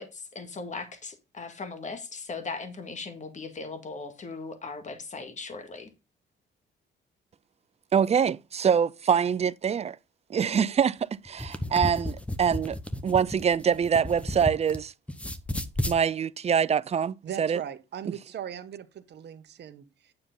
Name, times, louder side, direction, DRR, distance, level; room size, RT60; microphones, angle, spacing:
voice 1, 0.0-5.9, left 4 dB, 35° left, 1.9 m, -38 dB
voice 2, 7.9-10.0 10.3-12.8 13.0-14.9 15.9-17.6, right 7 dB, 30° right, 0.5 m, -25 dB
sound 1, 11.3-14.8 15.1-16.0, left 1 dB, 5° left, 0.9 m, -33 dB
voice 3, 17.2-20.1, right 9 dB, 60° right, 1.1 m, -39 dB
9.6 x 6.9 x 3.8 m
cardioid pair, 90°, 20 cm